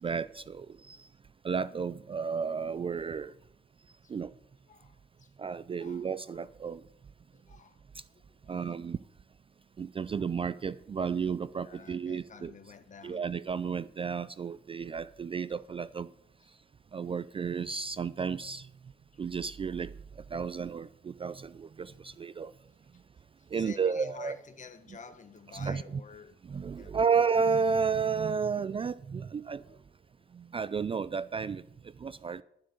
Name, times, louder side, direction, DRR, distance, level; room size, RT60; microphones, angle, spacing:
voice 1, 0.0-1.1 1.4-3.3 4.1-4.3 5.4-6.8 8.5-9.0 9.8-12.5 13.0-16.1 16.9-18.7 19.2-19.9 20.3-22.5 23.5-24.4 25.5-25.8 26.4-29.6 30.3-31.6 32.0-32.4, right 6 dB, 25° right, 0.4 m, -32 dB
voice 2, 4.7-5.3 5.8-6.4 7.3-7.8 8.1-8.6 11.6-13.3 19.1-19.2 21.9-22.1 23.4-26.4 26.7-27.0 29.5-29.8, left 5 dB, 40° left, 1.4 m, -51 dB
12.0 x 7.6 x 6.4 m
cardioid pair, 90°, 20 cm